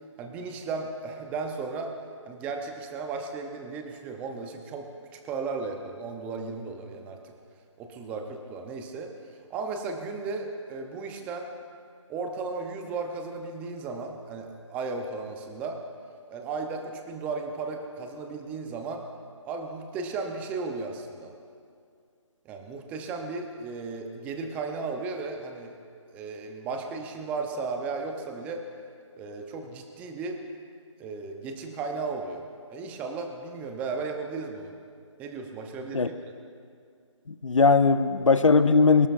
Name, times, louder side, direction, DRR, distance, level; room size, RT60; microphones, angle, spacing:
voice 1, 0.2-2.0 2.3-4.9 5.1-7.3 7.8-11.5 12.1-15.8 16.3-19.0 19.4-21.3 22.4-25.8 26.1-28.6 29.2-30.4 31.0-32.4 32.7-34.7 35.2-36.1, right 4 dB, 10° right, 4 dB, 0.8 m, -35 dB
voice 2, 37.3-39.1, left 4 dB, 75° left, 11 dB, 1.0 m, -19 dB
24.0 x 19.0 x 2.6 m, 2.3 s
figure-of-eight pair, 155°, 17 cm